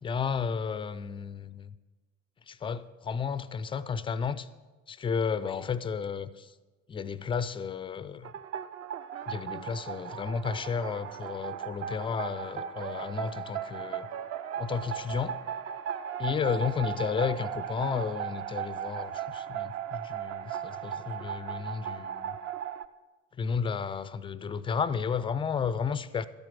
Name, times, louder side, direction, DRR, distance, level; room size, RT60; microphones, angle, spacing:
voice 1, 0.0-1.7 2.5-4.5 4.9-6.5 6.9-8.3 9.3-14.1 14.6-15.4 16.2-22.4 23.4-26.3, left 6 dB, 15° left, 16 dB, 0.4 m, -32 dB
sound 1, 8.2-22.9, right 9 dB, 40° right, 0.6 m, -37 dB
12.5 x 8.8 x 5.9 m, 1.2 s
figure-of-eight pair, 65°, 42 cm